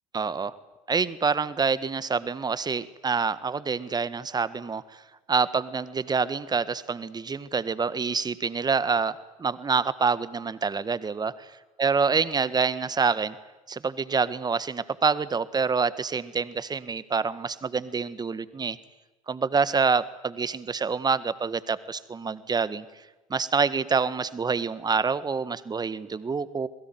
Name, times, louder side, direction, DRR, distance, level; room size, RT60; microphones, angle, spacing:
voice 1, 0.1-0.5 0.9-4.8 5.3-11.5 11.8-13.3 13.7-18.8 19.3-22.8 23.3-26.7, right 5 dB, 20° right, 15 dB, 1.6 m, -26 dB
28.0 x 21.5 x 9.5 m, 1.1 s
figure-of-eight pair, 65°, 18 cm